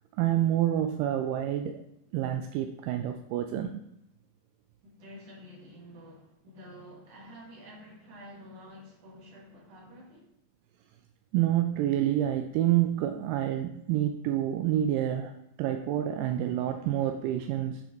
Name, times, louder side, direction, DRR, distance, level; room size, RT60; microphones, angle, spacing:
voice 1, 0.1-1.8 2.1-3.8 11.3-15.3 15.6-17.8, right 12 dB, 85° right, 5 dB, 2.2 m, -28 dB
voice 2, 4.8-10.3, equal, 55° right, -3 dB, 2.9 m, -49 dB
7.9 x 4.5 x 4.2 m, 0.80 s
omnidirectional pair, 3.8 m